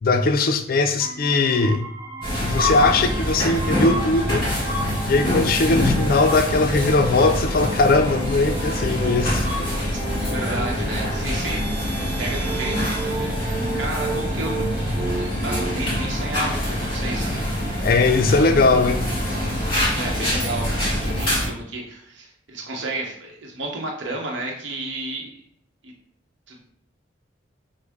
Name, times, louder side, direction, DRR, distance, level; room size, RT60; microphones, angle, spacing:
voice 1, 0.0-1.8 2.4-4.5 5.1-9.7 17.8-19.0, left 3 dB, 50° left, 8 dB, 0.4 m, -20 dB
sound 1, 1.0-15.8, right 2 dB, 20° right, 0.4 m, -35 dB
sound 2, 2.2-21.5, equal, 30° left, 1.7 m, -25 dB
voice 2, 10.3-11.7 12.2-13.5 13.7-14.7 15.4-17.4 19.9-25.3 25.8-25.9 26.5-26.6, right 2 dB, 75° right, 0 dB, 0.8 m, -32 dB
6.1 x 2.1 x 3.5 m, 0.65 s
head